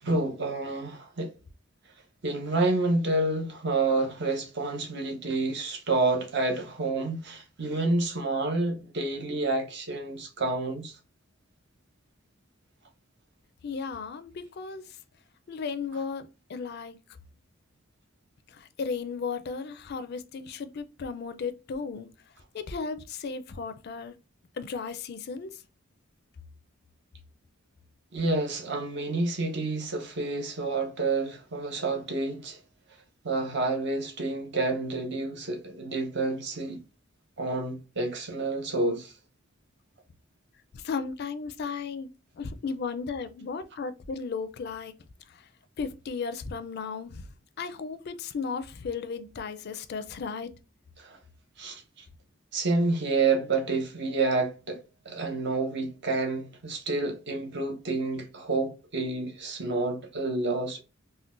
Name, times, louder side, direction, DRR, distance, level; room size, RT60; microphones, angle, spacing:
voice 1, 0.0-1.3 2.2-11.0 28.1-32.6 33.2-36.8 37.4-39.1 51.0-51.2 51.6-52.0 52.5-60.8, right 3 dB, 55° right, 0.7 m, -29 dB
voice 2, 13.6-14.8 15.5-17.0 18.5-22.1 22.5-24.1 24.6-25.5 40.7-42.1 42.4-44.9 45.8-47.2 47.6-50.5, left 5 dB, 50° left, 0.4 m, -35 dB
3.7 x 2.1 x 2.4 m
head